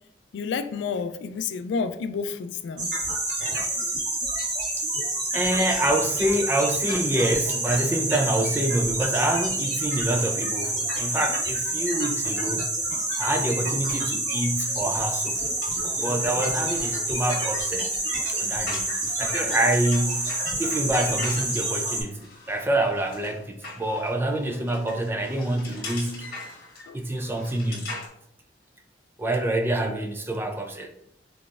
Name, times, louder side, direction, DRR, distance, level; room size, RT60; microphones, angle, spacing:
voice 1, 0.3-2.9 26.9-27.0, left 5 dB, 85° left, 0.3 m, -30 dB
sound 1, 2.8-22.0, right 2 dB, 75° right, 1.5 m, -28 dB
voice 2, 5.3-12.6 13.2-15.4 16.0-17.9 18.4-18.9 19.2-20.3 20.6-26.3 26.9-27.9 29.2-30.9, right 1 dB, 15° right, 0.3 m, -26 dB
sound 2, 14.6-28.1, left 2 dB, 55° left, 1.2 m, -42 dB
3.8 x 3.3 x 2.4 m
head